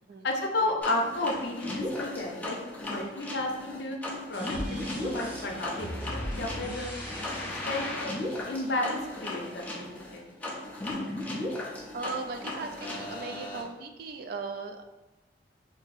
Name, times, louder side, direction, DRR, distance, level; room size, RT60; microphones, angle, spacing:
voice 1, 0.2-6.9 7.4-8.1 8.5-10.3, left 2 dB, 65° left, 1 dB, 0.6 m, -33 dB
sound 1, 0.8-13.6, left 1 dB, 10° left, 0.5 m, -36 dB
sound 2, 4.3-9.3, equal, 10° right, 1.2 m, -40 dB
voice 2, 11.9-14.8, right 4 dB, 55° right, 5 dB, 0.3 m, -37 dB
2.8 x 2.6 x 3.9 m, 1.0 s
head